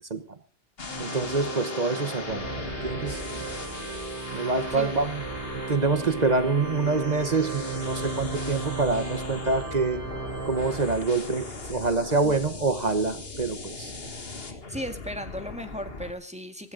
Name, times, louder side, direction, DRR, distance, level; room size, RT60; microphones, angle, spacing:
sound 1, 0.8-16.1, left 3 dB, 65° left, 2.0 m, -39 dB
Organ, 0.8-11.5, right 2 dB, 15° left, 7.2 m, -36 dB
voice 1, 1.0-2.4 2.8-3.4 4.3-5.1 5.7-10.0 10.5-13.9, right 3 dB, 40° right, 11 dB, 1.3 m, -26 dB
voice 2, 14.3-16.7, equal, 5° right, 6 dB, 2.0 m, -36 dB
19.5 x 16.5 x 3.9 m, 0.36 s
omnidirectional pair, 1.1 m